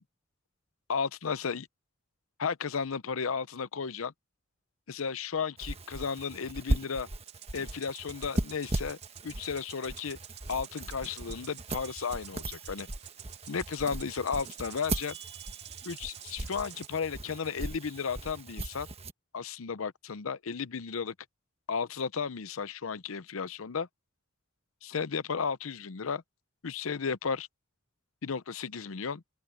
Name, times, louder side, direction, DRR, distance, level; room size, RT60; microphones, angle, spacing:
voice 1, 0.9-1.7 2.4-4.1 4.9-7.1 7.5-9.0 9.2-10.2 10.5-12.9 13.5-15.2 15.8-18.9 19.3-21.1 21.7-23.9 24.8-26.2 26.6-27.5 28.2-29.2, left 6 dB, 85° left, 0.7 m, -34 dB
sound 1, 5.6-19.1, right 1 dB, 30° right, 1.4 m, -38 dB
sound 2, 7.2-16.9, right 12 dB, 55° right, 2.5 m, -50 dB
open air
head